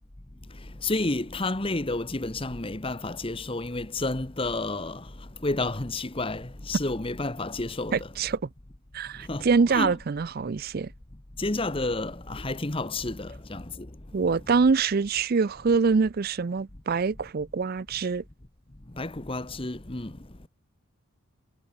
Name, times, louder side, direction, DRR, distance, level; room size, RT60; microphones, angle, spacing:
voice 1, 0.8-5.1 5.4-8.1 9.3-10.0 11.4-13.9 19.0-20.2, left 2 dB, 25° left, 1.1 m, -30 dB
voice 2, 7.9-8.5 8.9-10.9 14.1-18.2, right 5 dB, 45° right, 0.4 m, -25 dB
head